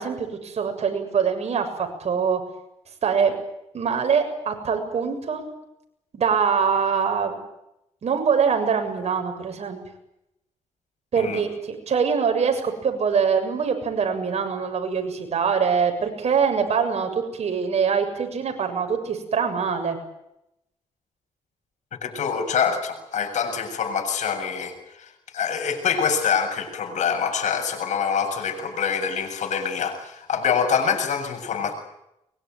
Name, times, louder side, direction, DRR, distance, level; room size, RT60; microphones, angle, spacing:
voice 1, 0.0-2.4 3.0-3.3 3.7-5.4 6.1-7.4 8.0-9.8 11.1-20.0, right 6 dB, 60° right, 5 dB, 7.3 m, -23 dB
voice 2, 21.9-31.7, left 7 dB, 75° left, 4 dB, 7.5 m, -25 dB
24.0 x 23.0 x 9.3 m, 0.84 s
cardioid pair, 75°, 12 cm